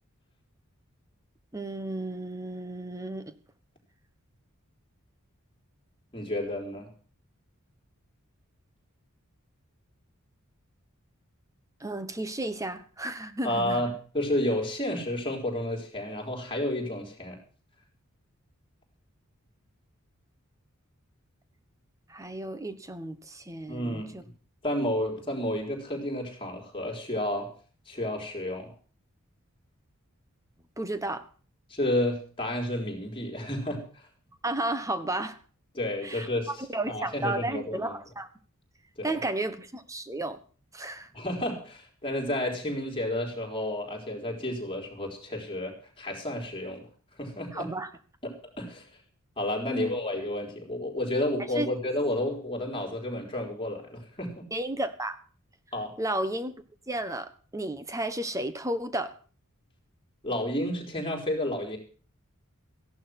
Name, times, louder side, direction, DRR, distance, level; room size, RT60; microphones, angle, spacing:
voice 1, 1.5-3.3 11.8-13.8 22.1-24.0 30.8-31.2 34.4-35.4 36.0-36.3 36.6-38.3 39.0-40.4 40.7-41.1 47.5-47.9 49.7-50.0 51.5-51.7 54.5-55.2 56.0-56.5 56.9-59.1, right 1 dB, 15° right, 11 dB, 1.3 m, -33 dB
voice 2, 6.1-6.9 13.4-17.4 23.7-24.3 24.6-27.5 27.9-28.7 31.7-33.9 35.7-36.5 36.8-37.9 39.0-39.2 41.1-46.9 47.2-47.7 48.2-48.9 49.4-54.5 55.7-55.9 60.2-61.8, left 1 dB, 25° left, 1 dB, 4.1 m, -31 dB
15.5 x 11.0 x 6.1 m, 0.41 s
head